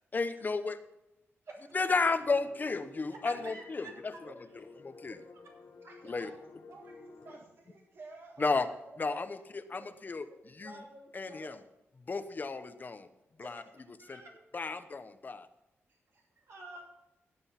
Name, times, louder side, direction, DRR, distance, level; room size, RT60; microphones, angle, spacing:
voice 1, 0.1-0.8 1.7-3.9 4.8-5.2 6.1-6.3 8.4-8.7 9.0-9.4 9.7-10.8 11.1-11.6 12.1-13.1 13.4-13.6 14.1-14.2 14.5-15.5, left 4 dB, 40° left, 11 dB, 0.9 m, -32 dB
sound 1, 2.1-7.4, left 3 dB, 60° left, 2.0 m, -52 dB
voice 2, 3.1-4.2 14.0-14.3 16.5-16.8, right 2 dB, 80° right, 0 dB, 5.6 m, -49 dB
voice 3, 4.2-4.6 5.1-5.2 5.8-6.3 6.7-8.7 9.0-9.6 10.6-11.6 13.4-13.6 14.3-14.4 15.9-16.5, right 2 dB, 55° right, 0 dB, 1.9 m, -52 dB
17.0 x 7.8 x 5.8 m, 0.93 s
wide cardioid pair, 100°, 5 cm